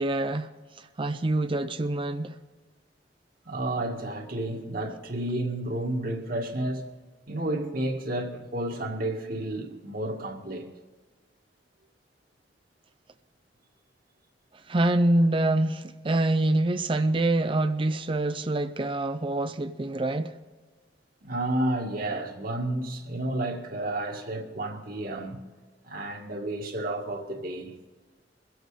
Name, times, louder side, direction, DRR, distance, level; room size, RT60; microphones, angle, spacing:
voice 1, 0.0-2.3 14.7-20.3, right 2 dB, 30° right, 0.5 m, -26 dB
voice 2, 3.5-6.9 7.3-10.7 21.2-25.4 25.8-27.7, right 1 dB, 55° right, 1.8 m, -31 dB
22.5 x 8.0 x 4.9 m
head